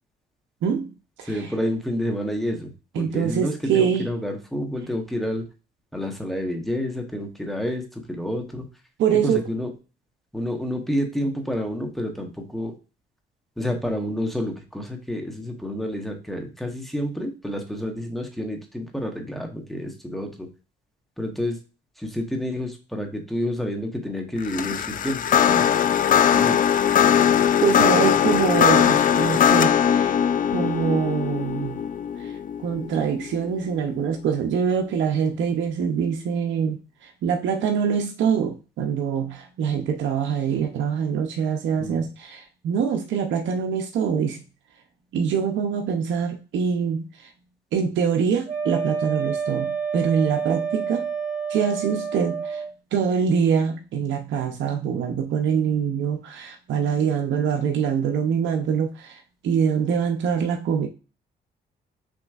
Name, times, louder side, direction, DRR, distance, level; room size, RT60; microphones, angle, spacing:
voice 1, 0.6-0.9 1.2-1.5 2.9-4.1 9.0-9.4 27.6-30.1 30.5-31.8 32.2-44.4 45.1-47.3 47.7-51.1 51.5-52.6 52.9-60.9, right 7 dB, 70° right, 3 dB, 0.7 m, -24 dB
voice 2, 1.3-5.4 5.9-8.6 9.2-9.7 10.3-12.7 13.6-20.5 21.2-21.6 22.0-25.7 26.3-26.6 41.8-42.0, equal, ahead, 3 dB, 1.2 m, -29 dB
sound 1, 24.4-33.7, left 9 dB, 45° left, 0.4 m, -20 dB
Wind instrument woodwind instrument, 48.5-52.7, right 6 dB, 15° right, 2.0 m, -28 dB
6.0 x 3.1 x 2.4 m, 0.33 s
cardioid pair, 90°, 20 cm